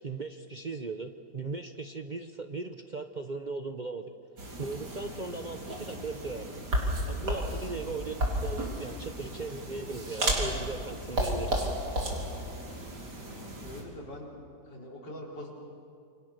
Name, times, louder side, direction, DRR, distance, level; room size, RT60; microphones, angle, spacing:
voice 1, 0.0-4.0 4.6-6.6 7.0-11.7, right 3 dB, 45° right, 7 dB, 0.6 m, -38 dB
sound 1, 4.4-13.8, right 1 dB, 65° right, 4.1 m, -33 dB
voice 2, 13.2-14.4 14.6-15.5, left 1 dB, 70° left, -2 dB, 4.8 m, -44 dB
28.5 x 24.5 x 6.6 m, 2.3 s
omnidirectional pair, 1.9 m